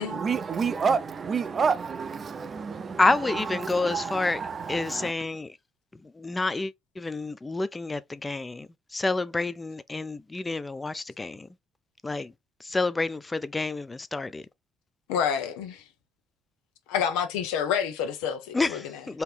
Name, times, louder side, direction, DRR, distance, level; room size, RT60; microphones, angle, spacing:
voice 1, 0.0-5.1, right 5 dB, 40° right, 0.6 m, -29 dB
voice 2, 3.0-4.4 4.7-5.6 5.9-11.5 12.0-12.3 12.6-14.5 18.5-19.2, left 3 dB, 20° left, 0.5 m, -29 dB
voice 3, 15.1-15.8 16.9-18.8, left 8 dB, 90° left, 0.9 m, -28 dB
4.3 x 2.9 x 3.3 m
supercardioid pair, 80°, 0 cm